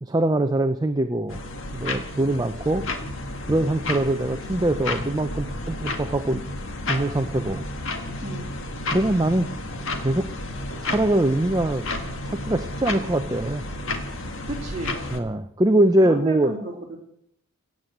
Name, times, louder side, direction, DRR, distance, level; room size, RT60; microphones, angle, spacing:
voice 1, 0.0-1.4 1.7-2.8 3.5-6.4 6.9-7.6 8.9-9.5 10.0-10.3 10.8-11.8 12.2-13.6 15.1-16.5, right 1 dB, 15° right, 8 dB, 0.5 m, -22 dB
sound 1, 1.3-15.2, left 2 dB, 60° left, 1.7 m, -32 dB
voice 2, 14.5-15.0 16.0-17.0, right 2 dB, 30° right, -3 dB, 2.6 m, -32 dB
17.0 x 7.6 x 7.9 m, 0.75 s
head